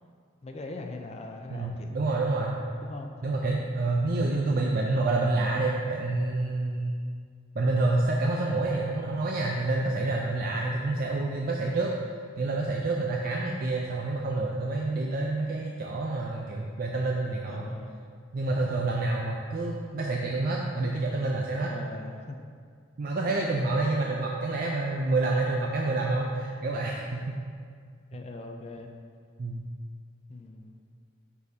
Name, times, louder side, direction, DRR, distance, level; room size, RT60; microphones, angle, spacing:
voice 1, 0.4-2.1 2.8-3.1 17.5-18.0 21.6-22.4 28.1-28.9 30.3-30.8, left 2 dB, 30° left, 3 dB, 0.4 m, -41 dB
voice 2, 1.5-2.6 3.2-6.9 7.5-11.9 12.4-17.7 18.3-21.7 23.0-27.4 29.4-29.6, right 2 dB, 45° right, -1 dB, 0.4 m, -28 dB
9.6 x 4.1 x 2.8 m, 2.1 s
head